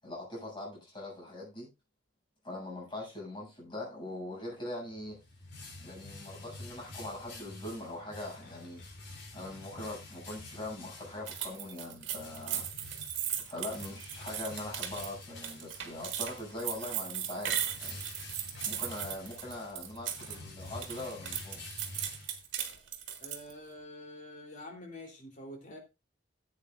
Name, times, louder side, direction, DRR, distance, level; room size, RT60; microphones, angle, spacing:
voice 1, 0.0-1.7 2.4-5.2 5.8-8.8 9.3-12.7 13.4-18.0 18.7-21.6, left 1 dB, 25° left, 7.7 m, -42 dB
sound 1, 4.9-22.8, left 2 dB, 65° left, 4.4 m, -48 dB
sound 2, 11.3-20.4 20.7-23.5, right 10 dB, 70° right, 2.1 m, -37 dB
voice 2, 23.2-25.8, left 1 dB, 40° left, 3.5 m, -47 dB
15.5 x 8.8 x 2.6 m
head